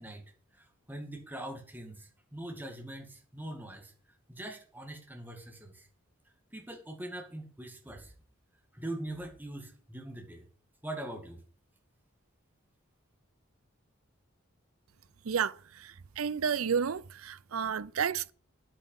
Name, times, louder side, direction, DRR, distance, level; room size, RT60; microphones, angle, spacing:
voice 1, 0.0-3.9 4.3-5.9 6.5-8.1 8.7-10.5 10.8-11.4, right 1 dB, 10° right, 2.0 m, -42 dB
voice 2, 16.2-18.3, right 7 dB, 85° right, 0.6 m, -30 dB
9.0 x 8.8 x 5.4 m
head